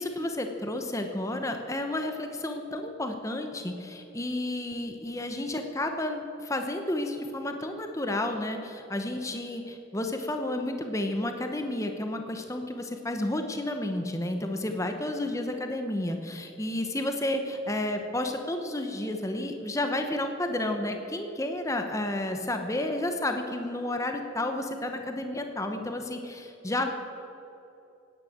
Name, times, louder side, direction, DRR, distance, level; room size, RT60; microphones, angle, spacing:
voice 1, 0.0-26.9, left 1 dB, 15° left, 5 dB, 1.0 m, -31 dB
17.0 x 10.0 x 7.4 m, 3.0 s
head